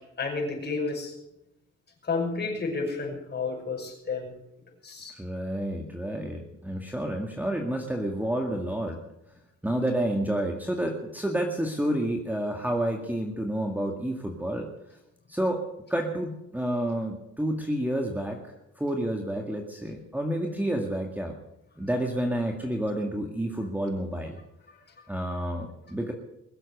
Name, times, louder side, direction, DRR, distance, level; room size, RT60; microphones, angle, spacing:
voice 1, 0.2-1.1 2.0-4.3 4.8-5.2, left 4 dB, 35° left, 1 dB, 6.0 m, -31 dB
voice 2, 5.1-9.0 9.6-14.7 15.3-15.6 15.9-21.4 21.8-24.4 25.1-26.1, right 1 dB, 5° right, 2 dB, 2.1 m, -29 dB
21.5 x 7.8 x 8.0 m, 0.85 s
cardioid pair, 90°, 30 cm